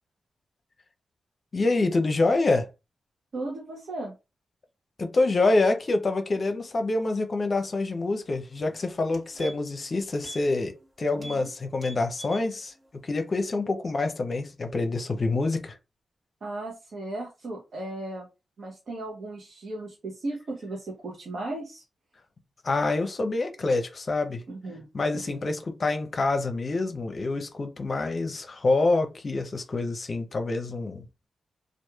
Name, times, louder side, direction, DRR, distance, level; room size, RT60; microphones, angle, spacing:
voice 1, 1.5-2.7 5.0-12.7 13.0-15.7 22.6-24.4 24.9-31.0, left 3 dB, 50° left, 0.6 m, -26 dB
voice 2, 3.3-4.1 11.2-11.5 16.4-18.3 18.6-21.8 24.5-24.9 25.1-25.4, right 2 dB, 65° right, 0.8 m, -36 dB
sound 1, 8.5-8.6 9.0-9.8 10.2-10.4 10.7-10.9 11.2-11.5 11.7-12.5 12.9-13.0, right 1 dB, 40° right, 1.5 m, -43 dB
2.8 x 2.5 x 2.3 m
cardioid pair, 50°, 0 cm